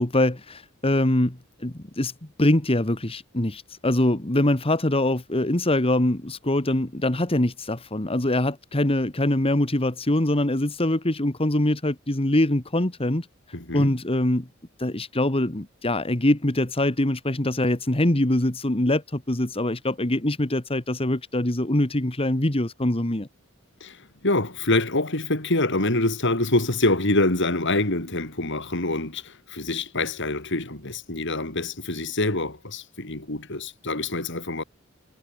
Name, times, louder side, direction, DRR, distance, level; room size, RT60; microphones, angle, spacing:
voice 1, 0.0-13.3 13.7-14.5 14.8-23.3, left 1 dB, 30° left, 1.9 m, -23 dB
voice 2, 13.5-13.9 23.8-34.6, left 2 dB, 60° left, 5.2 m, -25 dB
head